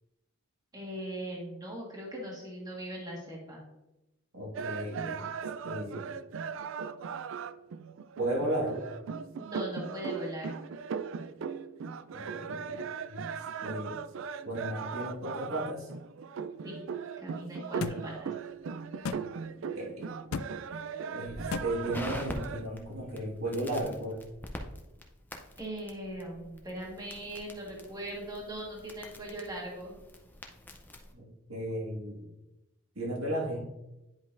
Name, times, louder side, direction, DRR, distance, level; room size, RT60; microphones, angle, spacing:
voice 1, 0.7-3.6 9.4-10.5 16.6-16.8 17.2-18.3 25.6-29.9, equal, 20° right, -2 dB, 1.5 m, -40 dB
voice 2, 4.3-5.3 5.6-6.1 8.2-8.8 12.1-13.2 13.6-14.0 14.4-15.9 19.7-20.1 21.1-24.2 31.1-32.3 33.0-33.6, right 1 dB, 90° right, -2 dB, 1.9 m, -35 dB
sound 1, 4.5-22.7, right 6 dB, 65° right, 0.3 m, -38 dB
sound 2, 17.8-18.0 19.0-19.2 20.3-20.5 21.5-21.7, left 5 dB, 85° left, 0.4 m, -33 dB
Crackle, 21.3-31.1, left 1 dB, 10° left, 0.6 m, -46 dB
10.0 x 5.2 x 2.5 m, 0.97 s
head